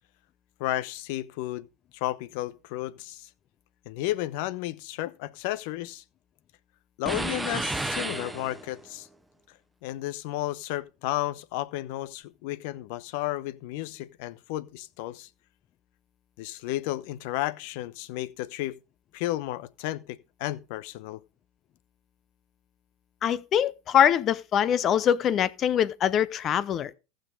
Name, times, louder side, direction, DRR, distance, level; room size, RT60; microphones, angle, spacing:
voice 1, 0.6-1.7 1.9-3.3 3.9-6.0 7.0-9.1 9.8-15.3 16.4-18.8 19.1-21.2, left 16 dB, 65° left, 0.9 m, -33 dB
sound 1, 7.1-8.9, right 2 dB, 10° right, 1.0 m, -32 dB
voice 2, 23.2-26.9, left 9 dB, 40° left, 0.8 m, -23 dB
15.0 x 6.4 x 5.2 m
hypercardioid pair, 100°, 0 cm